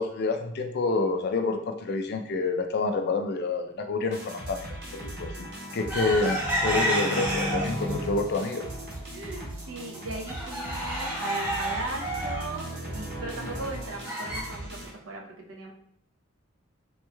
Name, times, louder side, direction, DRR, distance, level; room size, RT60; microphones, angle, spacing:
voice 1, 0.0-8.6, left 3 dB, 50° left, 6 dB, 0.4 m, -28 dB
sound 1, 4.1-14.9, equal, 55° right, 1.4 m, -37 dB
sound 2, 5.9-7.9 8.3-9.0 9.4-9.5 9.8-14.4, equal, 10° right, 0.9 m, -30 dB
voice 2, 9.1-14.8 15.1-15.7, right 2 dB, 70° right, 0 dB, 0.7 m, -38 dB
3.5 x 3.0 x 2.2 m, 0.69 s
head